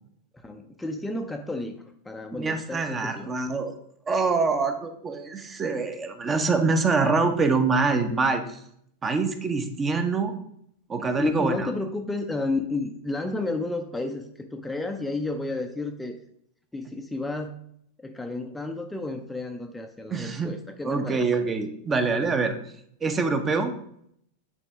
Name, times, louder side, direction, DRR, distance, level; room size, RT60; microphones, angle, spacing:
voice 1, 0.4-3.3 11.0-16.2 16.7-17.5 18.0-21.3, left 2 dB, 5° left, 4 dB, 0.6 m, -32 dB
voice 2, 2.3-3.7 4.1-8.6 9.0-10.4 10.9-11.7 20.1-20.5 20.8-22.6 23.0-23.7, right 4 dB, 20° right, 8 dB, 0.8 m, -25 dB
9.8 x 4.2 x 3.5 m, 0.70 s
figure-of-eight pair, 90°, 0 cm